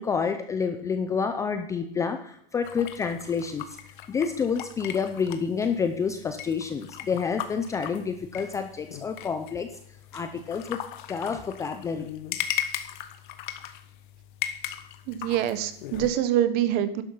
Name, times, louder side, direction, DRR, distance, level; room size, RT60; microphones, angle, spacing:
voice 1, 0.0-3.7 4.1-9.7 10.1-10.8 11.1-12.1, left 6 dB, 10° left, 8 dB, 0.6 m, -28 dB
sound 1, 2.6-16.1, left 11 dB, 55° left, 1.4 m, -38 dB
voice 2, 15.1-17.0, right 11 dB, 30° right, 13 dB, 1.2 m, -25 dB
12.5 x 11.5 x 5.6 m, 0.67 s
supercardioid pair, 155°, 30 cm